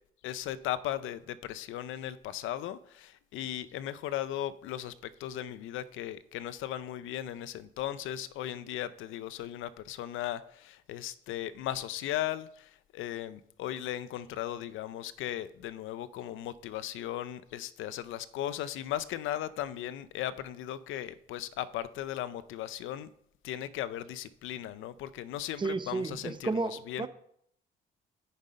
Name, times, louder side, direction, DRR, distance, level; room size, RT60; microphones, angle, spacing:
voice 1, 0.2-23.1 23.4-27.1, left 12 dB, 85° left, 0.5 m, -37 dB
voice 2, 25.6-27.1, right 3 dB, 25° right, 0.7 m, -32 dB
9.5 x 5.4 x 5.1 m
cardioid pair, 90°, 20 cm